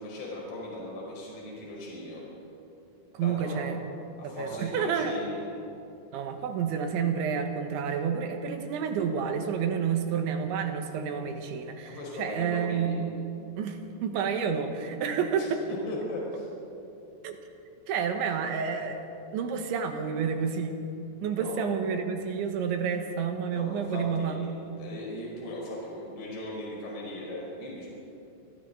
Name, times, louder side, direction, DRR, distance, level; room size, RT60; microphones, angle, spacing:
voice 1, 0.0-2.2 3.2-3.6 4.2-5.4 7.3-7.8 11.8-13.0 15.4-16.5 21.3-21.6 23.5-24.5 24.8-27.9, left 1 dB, 60° left, -4 dB, 6.8 m, -38 dB
voice 2, 3.1-3.8 4.2-5.2 6.1-13.1 13.6-15.6 17.2-17.4 17.9-19.0 19.3-20.8 21.2-24.4, right 6 dB, 75° right, 5 dB, 3.7 m, -29 dB
28.0 x 24.0 x 4.0 m, 2.8 s
omnidirectional pair, 5.5 m